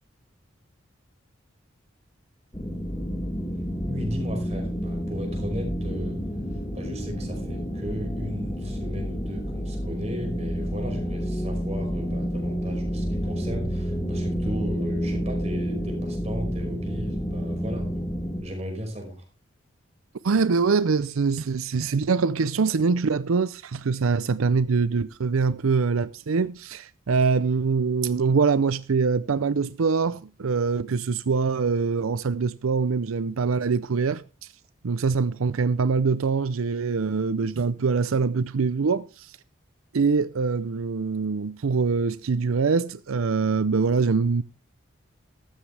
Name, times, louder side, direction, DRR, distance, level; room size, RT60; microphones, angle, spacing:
sound 1, 2.5-18.4, equal, 20° left, 2.3 m, -29 dB
voice 1, 3.9-6.2 6.5-19.2, equal, 30° right, 5.3 m, -36 dB
voice 2, 20.2-34.5 34.8-39.4 39.9-44.4, right 5 dB, 90° right, 0.5 m, -24 dB
14.5 x 13.0 x 3.3 m
head